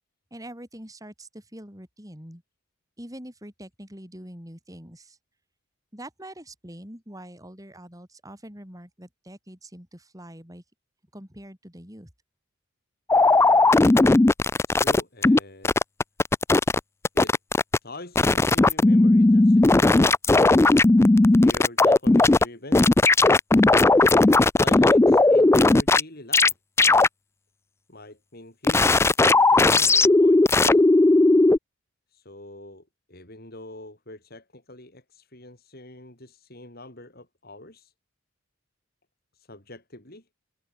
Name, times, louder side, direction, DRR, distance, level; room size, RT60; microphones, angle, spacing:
voice 1, 0.3-2.4 3.0-5.2 5.9-10.6 11.1-12.1, right 1 dB, 15° right, 7.4 m, -44 dB
sound 1, 13.1-15.4 15.6-16.8 17.0-17.8 18.2-22.4 22.7-26.0 26.3-26.5 26.8-27.1 28.6-31.6, left 2 dB, 15° left, 0.3 m, -17 dB
voice 2, 14.7-15.7 17.1-17.4 17.8-20.1 21.3-22.9 24.6-26.5 27.9-30.8 32.1-37.9 39.3-40.3, left 2 dB, 50° left, 6.2 m, -44 dB
head